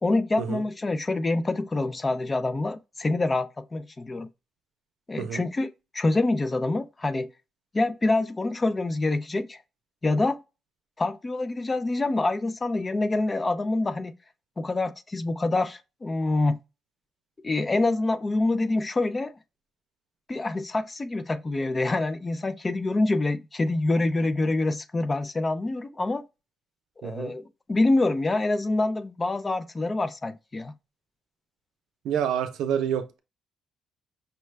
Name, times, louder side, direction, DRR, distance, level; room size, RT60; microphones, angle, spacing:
voice 1, 0.0-4.3 5.1-7.3 7.7-9.6 10.0-10.4 11.0-14.1 14.6-16.6 17.4-19.3 20.3-26.2 27.0-30.7, left 2 dB, 20° left, 0.3 m, -26 dB
voice 2, 27.0-27.3 32.0-33.2, right 9 dB, 85° right, 0.6 m, -28 dB
5.5 x 2.2 x 3.2 m
cardioid pair, 150°, 0 cm